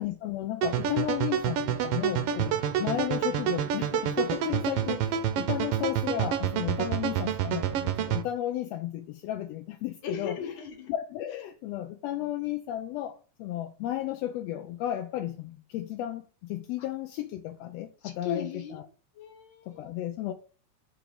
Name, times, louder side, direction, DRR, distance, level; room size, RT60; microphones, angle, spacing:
voice 1, 0.0-10.4 10.9-18.5 18.7-18.8 19.7-20.3, left 13 dB, 80° left, 1.5 m, -34 dB
sound 1, 0.6-8.2, right 9 dB, 75° right, 1.4 m, -28 dB
voice 2, 10.0-10.9 16.8-16.9 18.0-18.8 19.1-19.9, left 7 dB, 50° left, 1.7 m, -38 dB
5.0 x 4.6 x 5.1 m
omnidirectional pair, 3.4 m